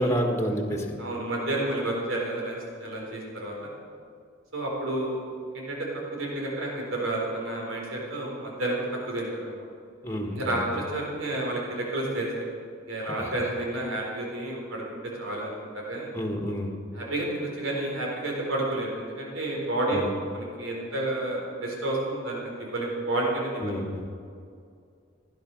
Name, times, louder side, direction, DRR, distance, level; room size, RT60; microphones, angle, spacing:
voice 1, 0.0-1.0 10.0-10.6 13.0-13.4 16.1-16.7 19.9-20.1 23.6-24.0, equal, 15° left, 3 dB, 1.6 m, -29 dB
voice 2, 1.0-3.5 4.5-5.2 5.5-9.7 10.3-12.5 12.8-14.8 15.2-16.1 16.9-20.0 20.3-23.8, right 1 dB, 90° right, -2 dB, 4.1 m, -30 dB
16.0 x 10.5 x 6.3 m, 2.3 s
head